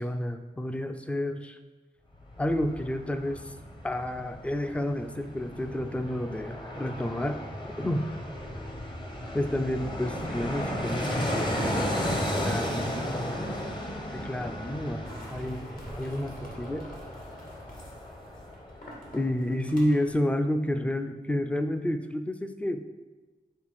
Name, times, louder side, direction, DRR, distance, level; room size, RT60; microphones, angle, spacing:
voice 1, 0.0-1.6 2.4-3.5 3.8-7.4 7.8-8.1 9.3-12.2 12.4-13.4 14.1-16.9 19.1-22.8, left 1 dB, 5° left, 8 dB, 0.4 m, -30 dB
Fixed-wing aircraft airplane, 2.1-19.1 19.4-19.5, equal, 25° left, 0.9 m, -34 dB
sound 1, 15.0-20.2, equal, 50° left, 1.5 m, -48 dB
5.7 x 3.6 x 4.8 m, 1.2 s
wide cardioid pair, 80°, 18 cm